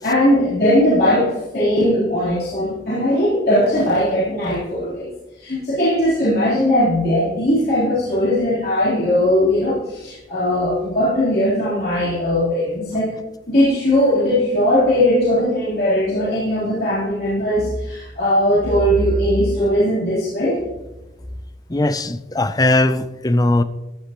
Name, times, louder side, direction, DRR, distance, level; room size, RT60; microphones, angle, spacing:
voice 1, 0.0-5.1 5.4-13.1 13.5-20.6, left 1 dB, 55° left, -9 dB, 3.6 m, -19 dB
voice 2, 21.7-23.6, left 2 dB, 20° left, 12 dB, 0.5 m, -18 dB
14.0 x 9.9 x 3.0 m, 1.0 s
head